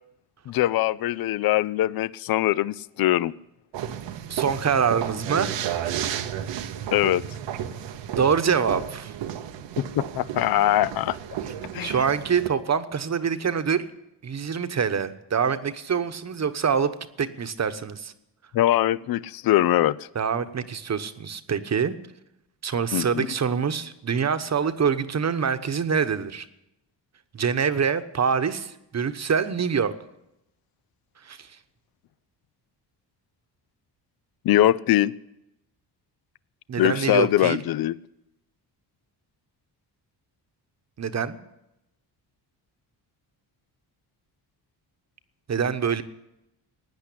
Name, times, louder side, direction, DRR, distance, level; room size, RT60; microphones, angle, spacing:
voice 1, 0.5-3.3 6.9-7.2 9.8-11.4 11.7-11.9 18.5-20.1 22.9-23.3 34.4-35.1 36.8-38.0, left 14 dB, 60° left, 20 dB, 0.5 m, -22 dB
sound 1, 3.7-12.5, right 10 dB, 90° right, 1.1 m, -33 dB
voice 2, 4.3-5.5 8.2-9.1 11.8-13.9 14.2-16.9 17.2-18.1 20.1-22.0 22.6-26.4 27.3-29.9 31.2-31.5 36.7-37.6 41.0-41.4 45.5-46.0, right 6 dB, 40° right, 10 dB, 1.1 m, -25 dB
17.0 x 9.8 x 8.5 m, 0.87 s
cardioid pair, 95°, 42 cm